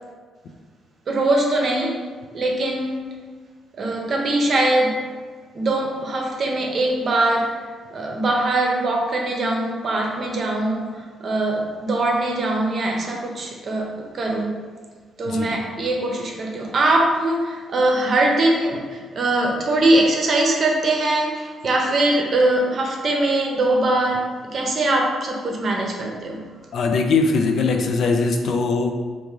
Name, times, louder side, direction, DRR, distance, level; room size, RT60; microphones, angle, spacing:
voice 1, 1.1-2.0 2.3-2.9 3.8-5.0 5.5-7.6 7.9-14.6 15.2-26.4, right 2 dB, 50° right, 1 dB, 0.6 m, -22 dB
voice 2, 15.3-15.6 26.7-28.9, left 4 dB, 65° left, 4 dB, 0.4 m, -21 dB
3.5 x 2.5 x 3.0 m, 1.5 s
cardioid pair, 90°, 0 cm